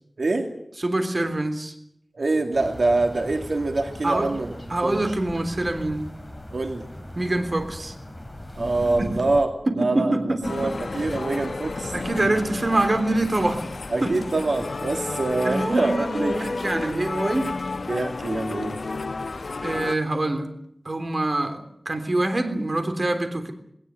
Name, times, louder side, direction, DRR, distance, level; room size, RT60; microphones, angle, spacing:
voice 1, 0.2-0.5 2.1-4.6 4.8-5.0 6.5-6.9 8.6-9.5 9.8-11.9 13.9-16.4 17.9-18.8, right 2 dB, 80° right, 4 dB, 2.3 m, -25 dB
voice 2, 0.8-1.7 4.0-4.3 4.7-6.0 7.2-7.9 9.0-9.2 9.7-10.8 11.9-13.7 14.0-14.2 15.4-17.5 19.6-20.5 20.9-23.5, right 2 dB, 45° right, 7 dB, 3.5 m, -25 dB
sound 1, 2.5-9.4, left 1 dB, 15° left, 4.8 m, -39 dB
sound 2, 10.4-20.0, left 3 dB, 80° left, 0.9 m, -32 dB
19.5 x 19.0 x 9.5 m, 0.73 s
wide cardioid pair, 75°, 0 cm